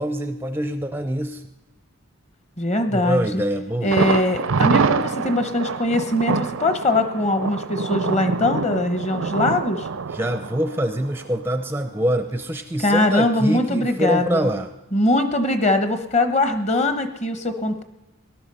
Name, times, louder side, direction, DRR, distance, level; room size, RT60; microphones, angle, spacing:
voice 1, 0.0-1.4 2.9-4.0 10.1-14.7, equal, 10° right, 8 dB, 0.5 m, -25 dB
voice 2, 2.6-3.4 3.8-9.9 12.8-14.5 14.9-17.8, left 1 dB, 30° left, 8 dB, 1.0 m, -21 dB
Thunder, 3.9-11.7 12.0-12.1 12.5-12.6, right 4 dB, 70° right, 0.5 m, -25 dB
18.5 x 11.5 x 5.5 m, 0.99 s
head